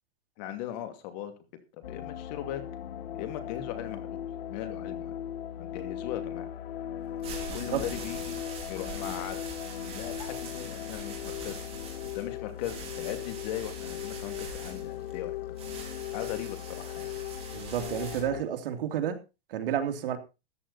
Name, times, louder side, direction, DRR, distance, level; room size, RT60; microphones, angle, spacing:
voice 1, 0.4-1.3 1.9-2.6 3.1-5.1 5.6-6.5 7.5-8.4 8.7-9.5 9.8-11.7 12.1-15.4 16.1-17.1, left 11 dB, 40° left, 9 dB, 2.6 m, -38 dB
sound 1, 1.8-18.4, left 11 dB, 70° left, 1.0 m, -38 dB
sound 2, 7.0-18.2, right 4 dB, 20° right, 4.8 m, -44 dB
voice 2, 7.5-7.8 17.5-19.2 19.5-20.2, right 9 dB, 60° right, 6 dB, 2.8 m, -31 dB
14.5 x 11.0 x 4.2 m, 0.29 s
supercardioid pair, 160°, 32 cm